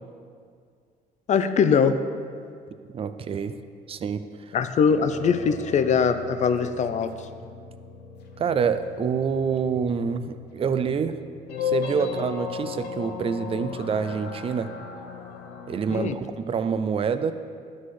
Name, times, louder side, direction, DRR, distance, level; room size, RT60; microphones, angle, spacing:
voice 1, 1.3-2.0 4.5-7.1 15.9-16.2, left 6 dB, 45° left, 10 dB, 0.5 m, -22 dB
voice 2, 2.9-3.6 3.9-4.6 8.4-11.2 11.6-14.7 15.7-17.3, right 6 dB, 35° right, 11 dB, 0.4 m, -27 dB
sound 1, 4.9-16.0, left 6 dB, 80° left, 0.9 m, -36 dB
12.0 x 4.2 x 4.8 m, 2.1 s
cardioid pair, 110°, 17 cm